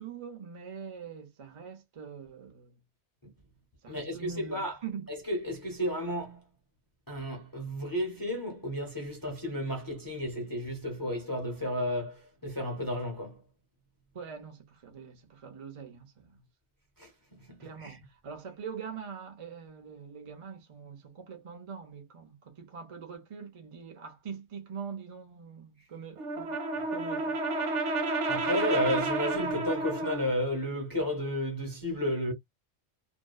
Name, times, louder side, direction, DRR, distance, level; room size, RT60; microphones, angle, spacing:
voice 1, 0.0-2.8 3.8-5.1 14.1-16.4 17.6-26.5 26.9-27.4, right 6 dB, 35° right, 0.6 m, -43 dB
voice 2, 3.9-4.8 5.3-6.4 7.1-13.4 17.0-17.1 17.4-18.0 28.3-32.3, equal, 20° left, 0.7 m, -32 dB
Brass instrument, 26.2-30.3, right 2 dB, 80° right, 1.0 m, -31 dB
2.7 x 2.1 x 2.2 m
omnidirectional pair, 1.2 m